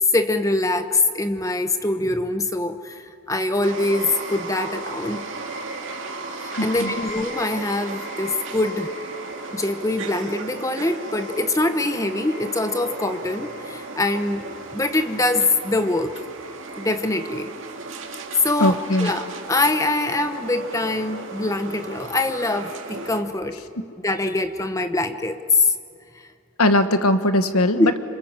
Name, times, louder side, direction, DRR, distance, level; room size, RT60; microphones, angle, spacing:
voice 1, 0.1-5.3 6.4-8.9 9.5-16.1 16.8-17.5 18.4-23.6 24.0-25.7 27.8-27.9, left 2 dB, 15° left, 9 dB, 1.0 m, -23 dB
sound 1, 3.6-23.2, right 2 dB, 60° right, 2.3 m, -35 dB
voice 2, 6.5-6.9 18.6-19.1 26.6-28.0, left 1 dB, 90° left, 9 dB, 1.5 m, -20 dB
27.0 x 25.5 x 7.5 m, 2.3 s
head